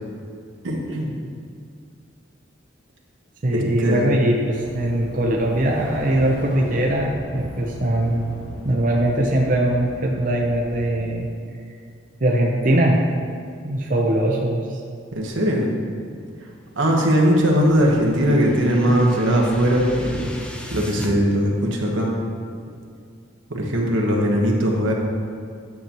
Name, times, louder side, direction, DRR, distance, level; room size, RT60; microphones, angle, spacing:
voice 1, 0.6-1.2 3.5-4.1 15.1-15.7 16.7-20.3 20.7-22.1 23.5-24.9, equal, 90° right, -1 dB, 1.2 m, -20 dB
voice 2, 3.4-8.2 8.6-11.3 12.2-13.0 13.6-14.8, right 1 dB, 45° right, -1 dB, 0.7 m, -21 dB
sound 1, 4.3-11.3, equal, 55° left, 1.9 m, -37 dB
sound 2, 17.3-21.1, equal, 5° left, 0.5 m, -36 dB
9.3 x 6.8 x 3.0 m, 2.3 s
head